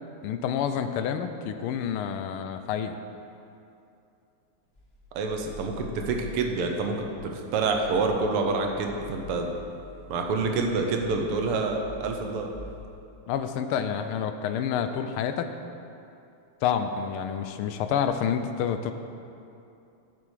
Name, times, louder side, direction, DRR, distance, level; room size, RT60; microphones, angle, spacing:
voice 1, 0.2-3.0 13.3-15.5 16.6-18.9, left 8 dB, 80° left, 8 dB, 1.4 m, -28 dB
sound 1, 4.7-7.3 7.7-8.2 8.6-12.9, left 3 dB, 30° left, 1.6 m, -46 dB
voice 2, 5.1-9.5 10.1-12.5, right 3 dB, 90° right, 3 dB, 1.8 m, -27 dB
10.5 x 6.9 x 4.8 m, 2.7 s
omnidirectional pair, 2.4 m